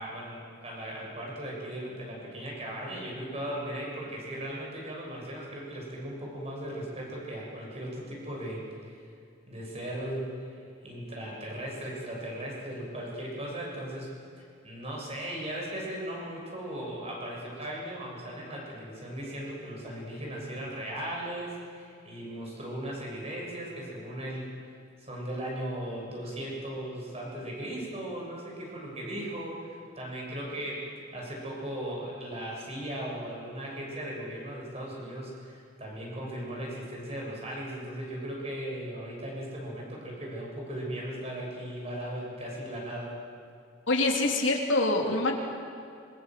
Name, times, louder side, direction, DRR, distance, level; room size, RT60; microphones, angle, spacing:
voice 1, 0.0-9.0 9.5-10.6 10.8-24.6 25.0-43.2, right 1 dB, 30° right, -3 dB, 7.0 m, -37 dB
voice 2, 43.9-45.3, left 2 dB, 80° left, 1 dB, 3.2 m, -25 dB
26.0 x 23.0 x 7.7 m, 2.4 s
head